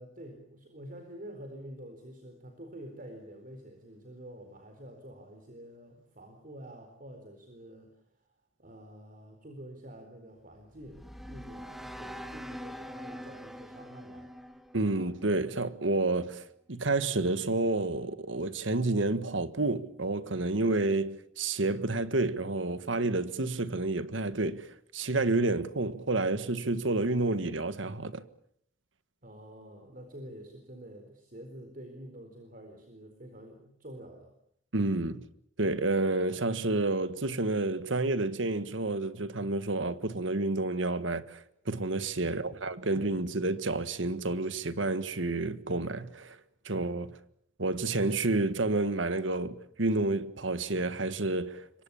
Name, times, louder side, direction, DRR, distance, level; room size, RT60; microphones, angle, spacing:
voice 1, 0.0-7.9 8.6-14.3 29.2-34.3 42.2-43.2, right 1 dB, 45° right, 4.2 m, -48 dB
sound 1, 10.5-15.7, equal, ahead, 1.6 m, -44 dB
voice 2, 14.7-24.7 24.9-28.2 34.7-35.2 35.6-46.4 46.6-47.2 47.6-51.8, right 2 dB, 80° right, 1.7 m, -30 dB
27.0 x 24.0 x 7.1 m
head